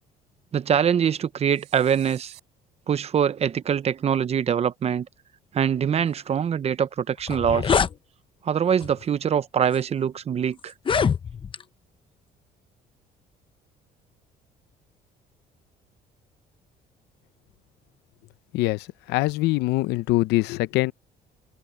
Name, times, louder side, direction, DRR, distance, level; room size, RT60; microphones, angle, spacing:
voice 1, 0.5-2.3 2.9-5.1 5.5-7.8 8.4-10.7, right 8 dB, 40° right, 0.8 m, -23 dB
sound 1, 1.4-2.4, right 19 dB, 90° right, 6.2 m, -49 dB
sound 2, 6.8-6.9 7.2-7.9 8.8-9.0 9.7-9.8 10.7-11.6, left 6 dB, 30° left, 0.8 m, -24 dB
voice 2, 18.5-20.9, left 19 dB, 90° left, 0.6 m, -23 dB
cardioid pair, 110°, 17 cm